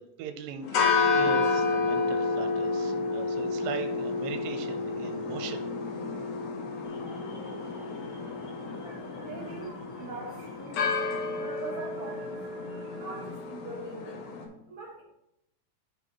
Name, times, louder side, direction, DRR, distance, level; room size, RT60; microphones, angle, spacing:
voice 1, 0.2-5.7, right 7 dB, 85° right, 6 dB, 2.3 m, -39 dB
sound 1, 0.6-14.4, left 4 dB, 65° left, 1.8 m, -30 dB
sound 2, 6.8-13.3, right 2 dB, 25° right, 1.7 m, -50 dB
voice 2, 8.8-10.9 11.4-12.4 12.9-14.2 14.7-15.0, right 3 dB, 55° right, -4 dB, 1.7 m, -42 dB
11.0 x 3.9 x 3.1 m, 0.83 s
omnidirectional pair, 4.0 m